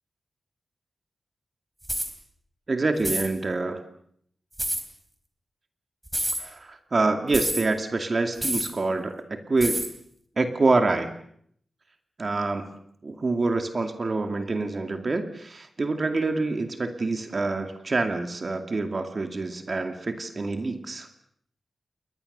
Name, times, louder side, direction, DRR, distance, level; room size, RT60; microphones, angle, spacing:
sound 1, 1.8-2.1 3.0-3.3 4.6-4.8 6.1-6.4 7.3-7.6 8.4-8.7 9.6-9.9, right 1 dB, 15° right, 3.8 m, -28 dB
voice 1, 2.7-3.8 6.4-9.9 10.4-11.1 12.2-12.7 13.0-21.1, right 3 dB, 40° right, 7 dB, 2.3 m, -26 dB
29.0 x 21.5 x 6.7 m, 0.65 s
wide cardioid pair, 105°, 0 cm